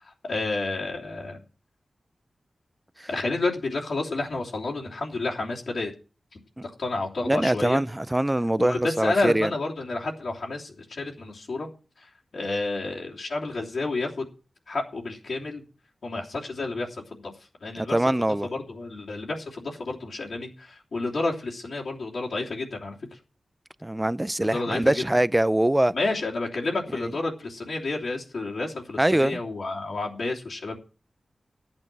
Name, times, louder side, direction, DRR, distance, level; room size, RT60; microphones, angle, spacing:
voice 1, 0.0-1.4 3.1-5.9 6.6-7.8 8.6-11.7 12.0-14.3 14.7-15.6 16.0-17.2 17.6-18.0 18.4-23.0 24.4-25.0 25.9-30.8, left 2 dB, 75° left, 3.1 m, -30 dB
voice 2, 7.2-9.5 17.7-18.5 23.8-25.9 27.0-27.1 29.0-29.4, right 1 dB, 15° right, 0.5 m, -23 dB
13.5 x 8.9 x 6.1 m
wide cardioid pair, 75°, 0 cm